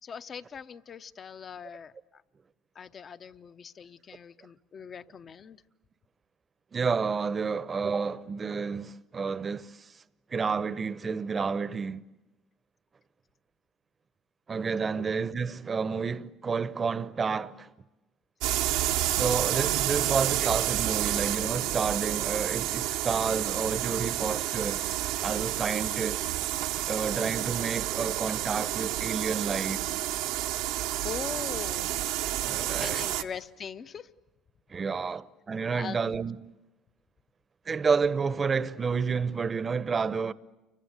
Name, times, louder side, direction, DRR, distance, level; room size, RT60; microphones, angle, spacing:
voice 1, 0.0-2.2 2.7-5.6 15.0-15.1 31.0-31.9 32.8-34.1 35.1-35.2 35.7-36.0, left 7 dB, 40° left, 0.8 m, -41 dB
voice 2, 6.7-9.9 10.3-12.0 14.5-17.7 19.1-24.8 25.2-26.3 26.9-29.9 32.4-33.0 34.7-36.4 37.7-40.3, right 5 dB, 30° right, 0.8 m, -30 dB
sound 1, 18.4-33.2, right 13 dB, 80° right, 1.0 m, -30 dB
29.5 x 24.0 x 8.0 m
supercardioid pair, 95°, 0 cm